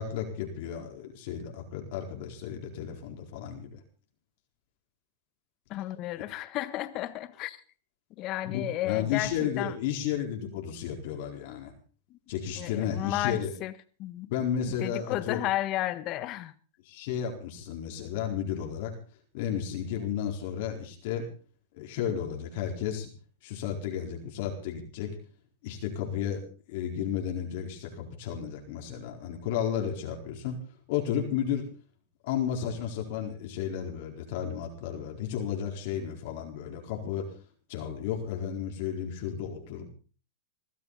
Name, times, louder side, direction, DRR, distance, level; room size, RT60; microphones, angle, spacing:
voice 1, 0.0-3.8 8.5-11.7 12.3-13.5 14.3-15.4 16.9-18.9 19.3-21.2 21.7-23.1 23.4-25.1 25.6-26.4 26.7-30.6 30.9-31.6 32.2-37.3 37.7-39.9, left 9 dB, 60° left, 4.4 m, -33 dB
voice 2, 5.7-7.6 8.2-9.8 12.1-12.2 12.6-13.7 14.0-14.3 14.6-16.5, left 15 dB, 40° left, 1.4 m, -33 dB
21.5 x 13.5 x 4.2 m
hypercardioid pair, 125°, 0 cm